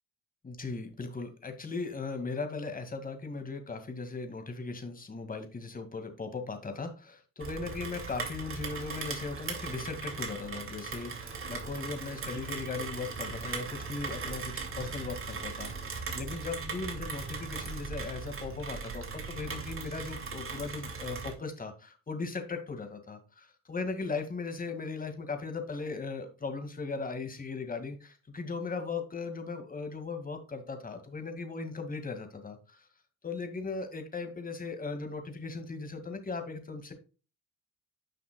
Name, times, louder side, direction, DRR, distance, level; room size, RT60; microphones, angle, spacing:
voice 1, 0.4-32.9 33.2-36.9, left 4 dB, 30° left, 6 dB, 2.0 m, -38 dB
Rain, 7.4-21.3, right 4 dB, 45° right, 2.3 m, -39 dB
9.9 x 5.7 x 2.2 m, 0.34 s
cardioid pair, 90°, 30 cm